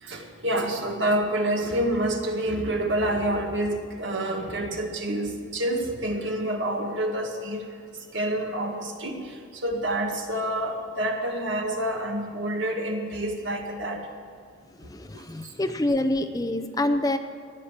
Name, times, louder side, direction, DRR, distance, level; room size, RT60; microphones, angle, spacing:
voice 1, 0.0-7.7 8.1-9.3 9.6-14.0 15.1-15.2, right 1 dB, 75° right, 2 dB, 1.9 m, -28 dB
voice 2, 14.8-17.2, left 1 dB, 20° left, 8 dB, 0.6 m, -26 dB
14.5 x 10.0 x 7.4 m, 2.3 s
head